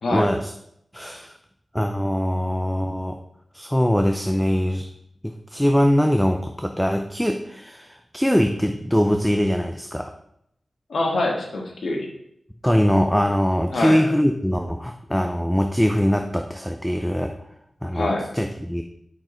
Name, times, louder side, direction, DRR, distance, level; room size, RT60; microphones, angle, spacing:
voice 1, 0.1-0.5 0.9-1.3 1.7-3.2 3.5-4.9 5.2-10.1 12.6-17.3 17.8-18.8, equal, 5° left, 5 dB, 0.5 m, -22 dB
voice 2, 10.9-12.1 13.7-14.0 17.9-18.2, left 2 dB, 85° left, 1 dB, 1.6 m, -24 dB
8.7 x 6.1 x 3.9 m, 0.74 s
wide cardioid pair, 105°, 0 cm